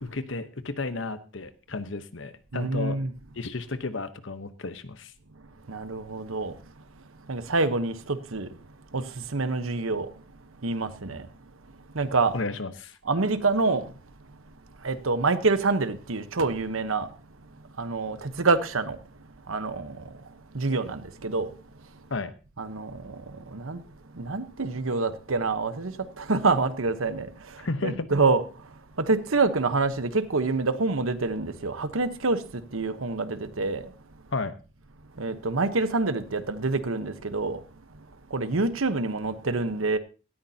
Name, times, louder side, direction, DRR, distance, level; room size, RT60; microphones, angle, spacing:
voice 1, 0.0-3.0 3.4-5.1 12.3-13.0 22.1-22.3 27.6-28.1 34.3-34.5, left 3 dB, 65° left, 1.0 m, -33 dB
voice 2, 2.5-3.1 5.4-6.6 7.2-8.6 8.9-10.2 10.6-11.3 11.9-12.3 13.0-13.9 14.8-17.1 17.8-19.0 19.5-21.6 22.6-23.8 24.1-33.9 35.2-37.6 37.9-38.0 38.3-40.0, right 3 dB, 85° right, 1.1 m, -27 dB
18.0 x 13.5 x 2.8 m
head